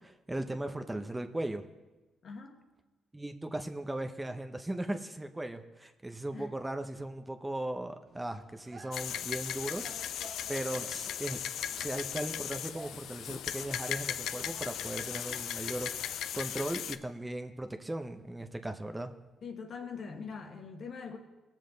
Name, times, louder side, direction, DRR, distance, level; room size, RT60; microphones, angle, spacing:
voice 1, 0.0-1.6 3.1-10.2 10.5-11.4 11.7-19.1, right 1 dB, 10° right, 6 dB, 0.7 m, -38 dB
voice 2, 2.2-2.6 6.3-6.6 19.4-21.2, left 5 dB, 55° left, 4 dB, 1.4 m, -42 dB
sound 1, 8.1-15.4, right 3 dB, 50° right, 1.1 m, -55 dB
sound 2, 8.9-17.0, left 10 dB, 80° left, 0.4 m, -37 dB
18.0 x 7.4 x 3.9 m, 1.1 s
cardioid pair, 90°, 0 cm